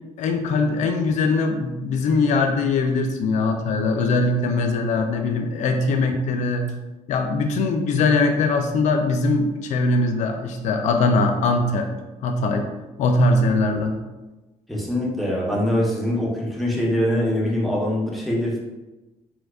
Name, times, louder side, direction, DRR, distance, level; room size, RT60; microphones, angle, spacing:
voice 1, 0.2-6.7 7.1-11.9 12.2-12.7 13.0-14.0, left 3 dB, 75° left, 4 dB, 0.4 m, -21 dB
voice 2, 14.7-18.6, left 1 dB, ahead, -4 dB, 0.7 m, -23 dB
4.4 x 2.3 x 2.3 m, 1.1 s
cardioid pair, 135°, 12 cm